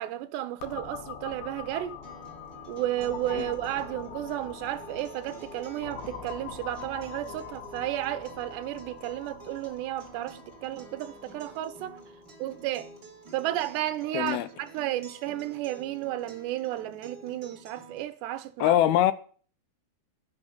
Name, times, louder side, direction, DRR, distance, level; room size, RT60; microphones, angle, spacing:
voice 1, 0.0-2.0 2.7-12.0 12.4-12.9 13.3-18.8, right 14 dB, 80° right, 3.4 m, -33 dB
sound 1, 0.6-14.2, left 7 dB, 60° left, 3.4 m, -44 dB
Acoustic guitar, 2.0-18.0, right 3 dB, 25° right, 3.0 m, -49 dB
voice 2, 14.1-14.5 18.6-19.1, left 12 dB, 75° left, 2.6 m, -23 dB
11.5 x 10.0 x 8.9 m
omnidirectional pair, 4.9 m